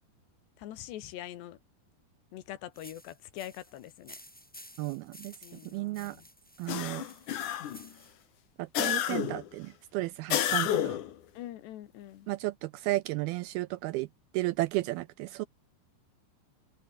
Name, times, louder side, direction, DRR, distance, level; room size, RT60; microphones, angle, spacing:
voice 1, 0.6-1.6 2.3-4.2 5.4-6.3 11.4-12.3, left 13 dB, 80° left, 3.7 m, -44 dB
sound 1, 2.7-8.2, equal, ahead, 5.6 m, -53 dB
voice 2, 4.8-5.3 5.7-6.2 6.6-7.0 8.6-11.0 12.3-14.1 14.3-15.5, right 19 dB, 80° right, 2.2 m, -33 dB
sound 2, 6.7-7.9 8.7-9.5 10.3-11.1, left 11 dB, 60° left, 2.5 m, -30 dB
omnidirectional pair, 4.9 m